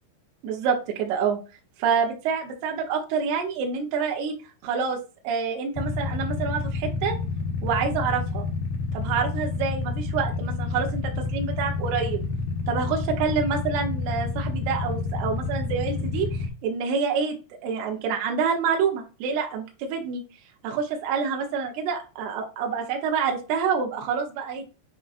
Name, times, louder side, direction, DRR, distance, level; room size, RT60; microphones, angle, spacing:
voice 1, 0.4-1.4 1.8-4.3 4.6-5.0 5.2-7.2 7.6-8.5 8.9-12.2 12.7-17.4 17.6-20.2 20.6-24.6, right 6 dB, 75° right, 1 dB, 3.2 m, -27 dB
Motorcycle / Idling, 5.8-16.5, left 3 dB, 65° left, 2.6 m, -29 dB
8.8 x 4.6 x 2.6 m, 0.31 s
omnidirectional pair, 4.7 m